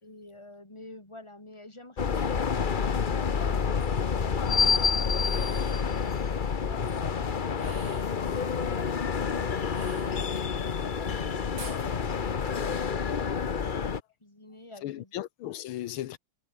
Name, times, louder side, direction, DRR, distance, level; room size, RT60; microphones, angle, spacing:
voice 1, 0.0-6.1 14.2-15.1, left 2 dB, 15° left, 3.7 m, -49 dB
sound 1, 2.0-14.0, left 6 dB, 40° left, 0.7 m, -28 dB
sound 2, 5.1-5.9 7.5-8.2 9.7-10.6 11.6-11.9, right 5 dB, 75° right, 3.8 m, -47 dB
voice 2, 11.7-12.0 14.8-16.2, left 13 dB, 85° left, 1.7 m, -37 dB
omnidirectional pair, 2.2 m